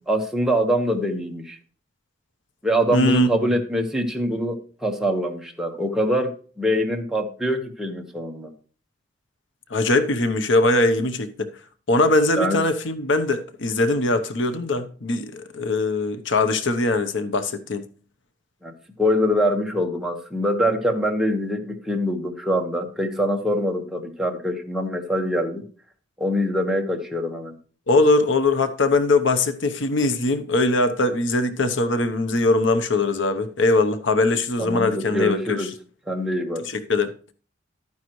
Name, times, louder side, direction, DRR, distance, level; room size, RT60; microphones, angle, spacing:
voice 1, 0.0-1.6 2.6-6.3 6.6-8.5 12.4-12.6 18.6-25.6 26.2-27.5 34.6-35.7 36.1-36.6, equal, 5° right, 1.4 m, -24 dB
voice 2, 2.9-3.5 9.7-11.5 11.9-17.8 27.9-35.6 36.7-37.3, left 2 dB, 70° left, 0.9 m, -21 dB
12.0 x 9.5 x 3.1 m
head